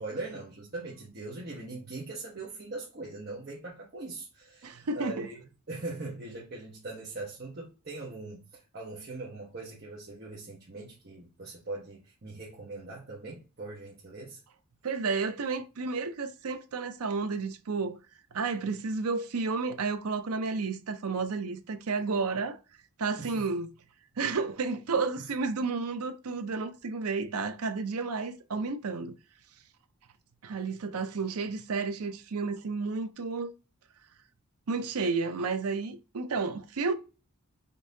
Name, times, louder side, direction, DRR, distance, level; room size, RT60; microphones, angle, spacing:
voice 1, 0.0-5.4 5.7-14.4 23.2-23.5, right 2 dB, 45° right, 1.0 m, -41 dB
voice 2, 4.6-5.3 14.8-18.0 18.3-22.6 23.0-23.7 24.2-29.2 30.4-33.5 34.7-36.9, right 4 dB, 85° right, 0.6 m, -31 dB
5.3 x 2.7 x 2.7 m
head